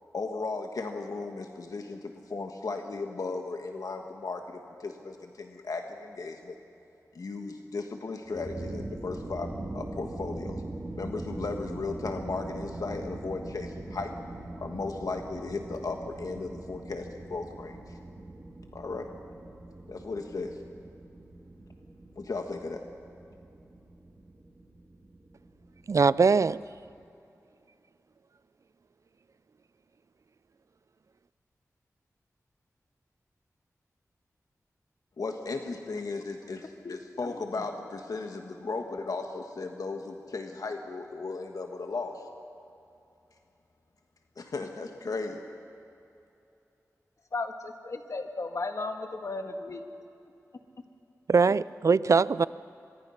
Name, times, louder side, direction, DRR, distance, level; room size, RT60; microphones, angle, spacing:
voice 1, 0.1-6.6 7.1-10.6 10.9-14.1 14.6-18.0 18.7-19.1 19.9-20.6 22.1-22.8 35.2-42.2 44.4-45.4, left 3 dB, 75° left, 1.5 m, -36 dB
sound 1, 8.2-27.1, right 2 dB, 45° right, 3.4 m, -42 dB
voice 2, 25.9-26.6 51.3-52.5, right 5 dB, 60° right, 0.4 m, -22 dB
voice 3, 47.3-49.8, left 3 dB, 60° left, 1.7 m, -35 dB
25.0 x 22.0 x 5.8 m
wide cardioid pair, 75°, 6 cm